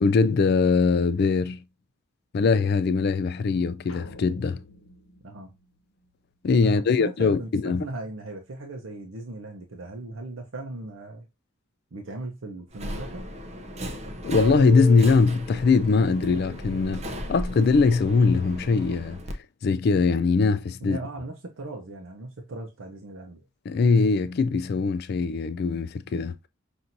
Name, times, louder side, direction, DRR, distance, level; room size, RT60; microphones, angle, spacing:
voice 1, 0.0-1.6 2.3-4.6 6.4-7.8 14.2-17.0 17.3-19.2 19.6-21.0 23.7-26.3, left 4 dB, 50° left, 0.3 m, -21 dB
sound 1, 3.9-6.3, left 1 dB, 75° left, 1.0 m, -48 dB
voice 2, 7.0-11.3 11.9-13.3 20.8-23.4, right 2 dB, 75° right, 0.7 m, -38 dB
Subway metro underground, 12.7-19.3, equal, 30° right, 0.6 m, -35 dB
5.8 x 2.6 x 2.6 m
head